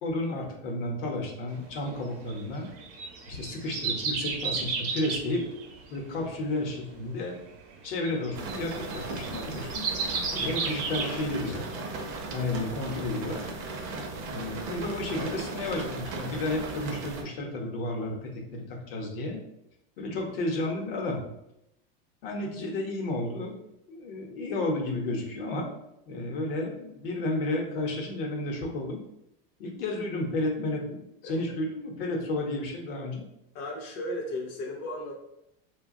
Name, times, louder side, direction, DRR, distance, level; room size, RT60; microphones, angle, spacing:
voice 1, 0.0-2.7 3.3-5.5 5.9-7.4 7.8-9.8 10.3-11.7 12.3-13.5 14.3-19.4 20.0-21.2 22.2-23.6 23.9-25.7 26.1-29.0 29.6-33.2, left 2 dB, 70° left, 1 dB, 0.8 m, -32 dB
sound 1, 1.8-11.8 12.2-12.3, right 4 dB, 75° right, 0.7 m, -33 dB
sound 2, 8.3-17.2, right 3 dB, 40° right, 0.4 m, -37 dB
voice 2, 33.5-35.2, left 1 dB, 35° left, -1 dB, 0.4 m, -35 dB
3.0 x 2.2 x 2.5 m, 0.82 s
supercardioid pair, 170°, 29 cm